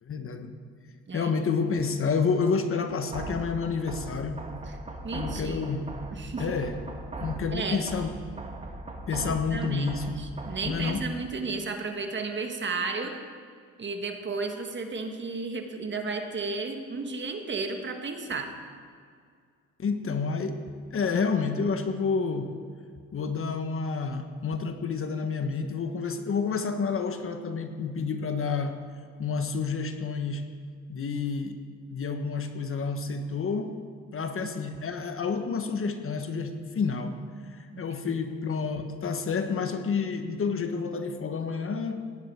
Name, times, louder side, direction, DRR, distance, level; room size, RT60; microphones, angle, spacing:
voice 1, 0.1-0.5 1.1-4.4 5.1-5.9 6.4-6.7 7.2-8.1 9.1-10.2 10.6-11.0 19.8-20.6 20.9-22.5 23.1-28.8 29.2-30.5 30.9-31.6 31.9-33.7 34.1-37.1 37.5-42.0, left 5 dB, 45° left, 7 dB, 1.2 m, -29 dB
sound 1, 3.1-11.1, right 2 dB, 20° right, 1.5 m, -39 dB
voice 2, 5.0-5.6 6.1-6.5 7.5-7.8 9.1-13.1 13.8-18.5 37.7-38.0 38.3-38.4, right 4 dB, 40° right, 5 dB, 1.6 m, -33 dB
16.5 x 11.0 x 4.7 m, 2.1 s
cardioid pair, 90°, 30 cm